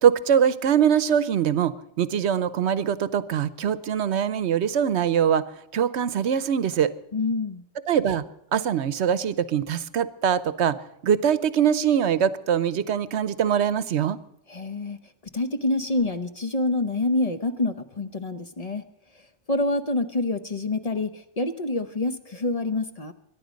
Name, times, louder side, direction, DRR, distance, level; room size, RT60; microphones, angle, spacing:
voice 1, 0.0-5.5 5.7-6.9 7.9-8.2 8.5-10.8 11.0-14.2, right 8 dB, 65° right, 15 dB, 1.0 m, -23 dB
voice 2, 7.1-7.6 14.5-15.0 15.3-18.8 19.5-23.1, left 2 dB, 35° left, 8 dB, 0.8 m, -27 dB
23.0 x 11.0 x 5.2 m, 0.79 s
omnidirectional pair, 1.2 m